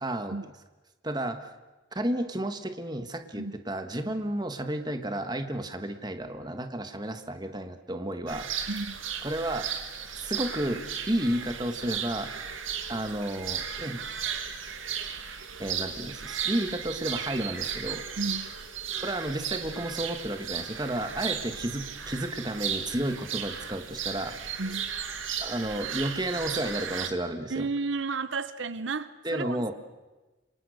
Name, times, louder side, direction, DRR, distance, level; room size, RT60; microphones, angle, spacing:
voice 1, 0.0-0.5 1.0-1.5 1.9-8.5 9.2-9.7 10.1-12.3 12.9-14.0 15.6-18.0 19.0-24.4 25.4-27.7 29.2-29.7, right 1 dB, 20° right, 7 dB, 1.6 m, -32 dB
sound 1, 8.3-27.1, right 8 dB, 90° right, 2.2 m, -35 dB
voice 2, 8.7-9.0 18.2-18.5 24.6-24.9 27.5-29.7, right 3 dB, 70° right, 14 dB, 0.8 m, -32 dB
27.5 x 26.0 x 6.6 m, 1.2 s
head